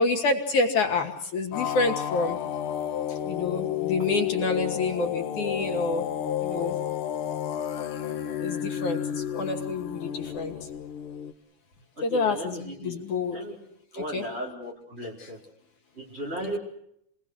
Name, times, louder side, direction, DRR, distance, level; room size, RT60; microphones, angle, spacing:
voice 1, 0.0-2.4 3.1-6.1 6.4-6.8 8.4-10.5 12.0-13.4 13.9-14.2 15.2-15.3 16.4-16.6, left 3 dB, 85° left, 4 dB, 4.0 m, -28 dB
sound 1, 1.5-11.3, left 10 dB, 60° left, 1.6 m, -31 dB
voice 2, 12.0-13.0 13.3-13.5 13.9-15.4 15.9-16.6, right 1 dB, 20° right, -1 dB, 4.9 m, -36 dB
29.0 x 20.0 x 6.5 m, 0.74 s
omnidirectional pair, 3.3 m